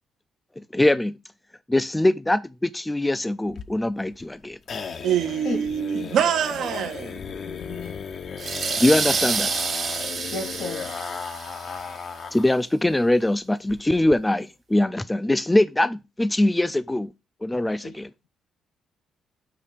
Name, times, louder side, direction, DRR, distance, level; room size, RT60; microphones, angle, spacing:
voice 1, 0.7-1.2 1.7-4.6 8.8-9.5 12.3-17.1 17.4-18.1, left 1 dB, 10° left, 0.3 m, -22 dB
sound 1, 3.5-12.6 12.9-13.0 13.3-13.4 13.7-14.1, left 6 dB, 50° left, 0.6 m, -36 dB
voice 2, 5.0-7.2, right 9 dB, 75° right, 0.7 m, -24 dB
voice 3, 7.4-8.0 10.3-10.9 17.8-18.0, left 3 dB, 80° left, 2.3 m, -33 dB
sound 2, 8.4-11.8, right 5 dB, 50° right, 1.1 m, -28 dB
6.7 x 2.7 x 5.5 m
cardioid pair, 90°, 0 cm